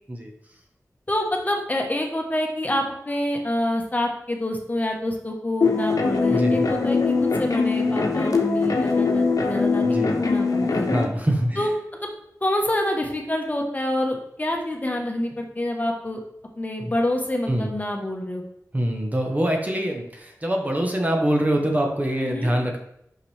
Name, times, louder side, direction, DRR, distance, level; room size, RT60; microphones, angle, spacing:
voice 1, 1.1-10.9 11.6-11.7 12.4-16.2 16.6-18.4 22.2-22.5, left 1 dB, 25° left, 2 dB, 1.1 m, -27 dB
sound 1, 5.6-11.1, left 4 dB, 80° left, 0.9 m, -22 dB
voice 2, 6.3-6.6 9.8-10.1 10.9-11.7 16.8-16.9 17.5-17.7 18.7-22.8, right 1 dB, 25° right, 2 dB, 1.0 m, -24 dB
5.9 x 5.8 x 3.3 m, 0.76 s
wide cardioid pair, 85°, 6 cm